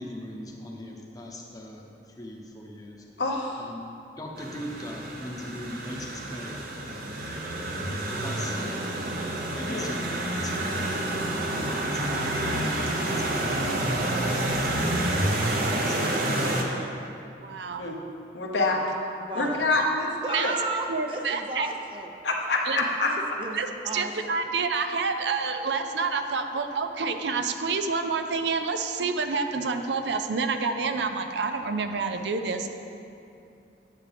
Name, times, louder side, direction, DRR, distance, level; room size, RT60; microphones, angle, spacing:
voice 1, 0.0-3.0 3.6-3.9 4.2-7.2 8.2-8.9 9.5-11.0 11.6-13.9 14.2-15.2 15.7-16.6, left 1 dB, 20° left, -1 dB, 0.9 m, -40 dB
voice 2, 3.2-3.7 7.4-7.6 9.6-9.9 17.8-18.0 18.3-18.8 19.3-20.5 22.2-23.1, left 2 dB, 75° left, -1 dB, 1.1 m, -27 dB
sound 1, 4.4-16.6, right 1 dB, 55° right, 1.0 m, -28 dB
voice 3, 17.4-17.9 20.3-20.6 20.9-21.7 22.7-22.8 23.5-32.8, right 4 dB, 75° right, 7 dB, 0.5 m, -28 dB
voice 4, 19.2-19.6 20.2-22.2 23.0-23.6 23.8-24.4, right 2 dB, 30° right, 3 dB, 0.6 m, -33 dB
9.2 x 8.3 x 3.5 m, 2.6 s
head